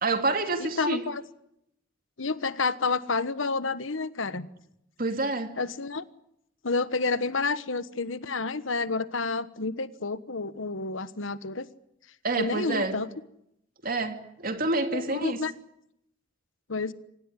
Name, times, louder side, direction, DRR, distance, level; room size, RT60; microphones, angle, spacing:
voice 1, 0.0-1.0 5.0-5.5 12.2-13.0 13.8-15.4, right 2 dB, 45° right, 7 dB, 2.8 m, -28 dB
voice 2, 0.8-1.2 2.2-4.5 5.6-6.0 6.6-11.7 12.4-13.1 14.9-15.5 16.7-16.9, left 3 dB, 90° left, 14 dB, 1.3 m, -29 dB
25.5 x 18.5 x 9.8 m, 0.80 s
head